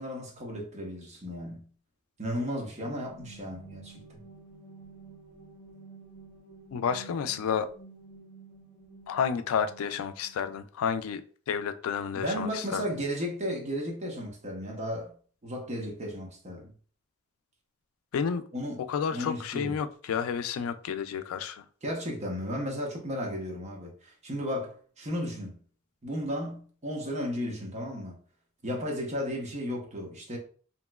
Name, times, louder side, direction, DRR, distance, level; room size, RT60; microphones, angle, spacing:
voice 1, 0.0-1.7 2.2-4.2 12.1-15.1 15.4-16.7 18.5-18.8 19.1-19.8 21.8-25.6 26.0-28.2 28.6-30.4, equal, 35° right, 0.8 m, -34 dB
sound 1, 2.7-10.5, right 3 dB, 40° left, 0.7 m, -51 dB
voice 2, 6.7-7.7 9.1-11.2 11.5-13.0 18.1-18.4 18.9-21.6, left 7 dB, 80° left, 0.3 m, -30 dB
2.9 x 2.9 x 2.2 m
head